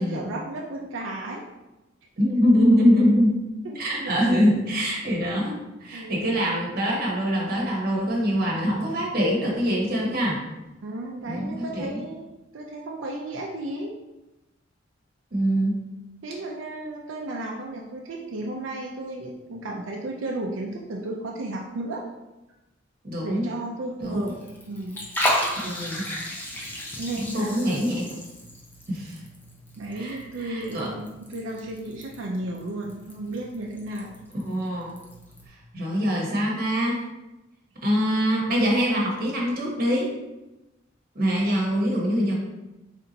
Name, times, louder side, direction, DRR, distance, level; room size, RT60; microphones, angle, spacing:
voice 1, 0.0-1.4 3.6-4.1 5.9-6.4 10.8-12.3 12.5-14.0 16.2-22.0 23.2-24.3 24.6-25.0 27.0-27.6 29.8-31.0 31.3-34.2, right 2 dB, 85° right, -1 dB, 0.5 m, -33 dB
voice 2, 2.2-3.4 3.7-5.5 5.8-10.4 11.2-11.9 15.3-15.8 23.0-23.5 24.0-24.3 25.6-26.1 27.2-28.1 28.9-29.2 29.9-30.9 34.4-34.9 35.5-37.0 37.8-40.1 41.1-42.3, equal, 50° right, -3 dB, 1.0 m, -24 dB
Liquid, 24.0-35.5, left 1 dB, 10° left, 0.6 m, -34 dB
3.3 x 2.8 x 3.9 m, 1.0 s
head